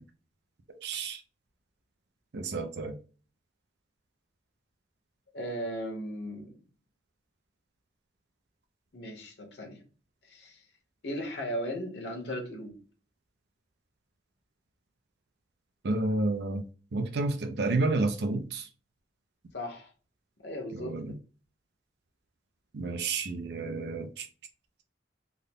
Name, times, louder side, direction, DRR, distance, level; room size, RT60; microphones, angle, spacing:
voice 1, 0.8-1.2 2.3-2.9 15.8-16.6 16.9-18.6 20.8-21.1 22.7-24.3, right 2 dB, 65° right, 0.5 m, -30 dB
voice 2, 5.3-6.6 8.9-9.8 10.3-10.6 11.0-12.8 19.5-19.9 20.4-21.2, equal, 70° left, 1.1 m, -37 dB
3.6 x 2.1 x 3.5 m
head